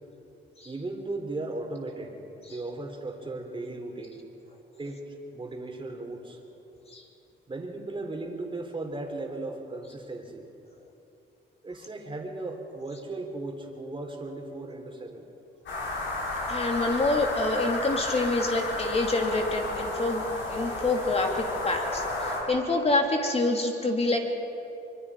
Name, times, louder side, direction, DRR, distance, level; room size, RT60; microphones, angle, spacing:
voice 1, 0.6-2.2 2.5-4.2 4.8-6.4 7.5-10.4 11.6-15.3 16.1-16.2, right 2 dB, 25° right, 2 dB, 3.5 m, -36 dB
sound 1, 15.7-22.4, left 2 dB, 70° left, 6.5 m, -32 dB
voice 2, 16.5-20.2 20.5-24.2, left 2 dB, 30° left, 2 dB, 3.2 m, -27 dB
24.5 x 24.0 x 5.0 m, 2.8 s
cardioid pair, 90°, 20 cm